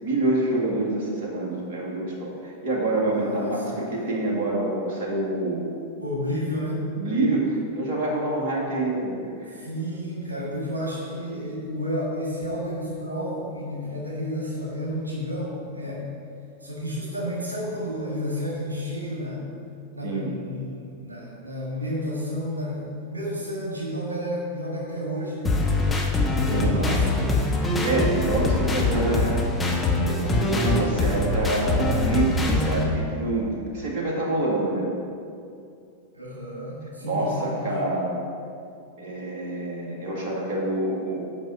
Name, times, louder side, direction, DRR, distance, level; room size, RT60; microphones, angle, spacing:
voice 1, 0.0-5.7 7.0-9.6 20.0-20.3 26.5-26.8 27.6-29.4 30.0-34.9 37.0-38.2 39.0-41.2, right 2 dB, 50° right, -3 dB, 1.9 m, -27 dB
voice 2, 3.0-3.9 6.0-6.8 9.5-16.0 16.6-19.4 19.9-25.6 26.3-27.4 36.1-37.7, equal, 80° right, -5 dB, 1.7 m, -31 dB
sound 1, 25.4-32.8, left 2 dB, 15° left, 1.2 m, -23 dB
9.1 x 5.4 x 5.6 m, 2.5 s
figure-of-eight pair, 90°, 0 cm